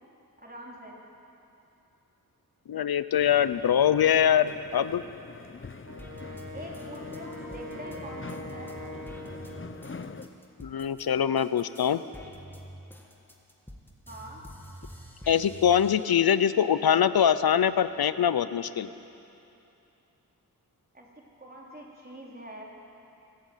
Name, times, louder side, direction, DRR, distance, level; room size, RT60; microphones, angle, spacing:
voice 1, 0.4-1.0 3.6-3.9 6.5-8.8 14.1-14.5 20.9-21.1 21.4-22.6, right 1 dB, 25° right, -3 dB, 4.4 m, -44 dB
voice 2, 2.7-5.0 10.6-12.0 15.3-18.9, left 9 dB, 85° left, 13 dB, 0.7 m, -23 dB
sound 1, 3.2-10.3, left 4 dB, 35° left, 0.8 m, -44 dB
Wind instrument woodwind instrument, 5.8-9.9, left 1 dB, 60° right, 2.4 m, -43 dB
sound 2, 6.0-11.1 11.4-16.6 17.0-18.0, equal, 5° left, 2.3 m, -48 dB
23.5 x 14.0 x 9.0 m, 2.8 s
wide cardioid pair, 85°, 36 cm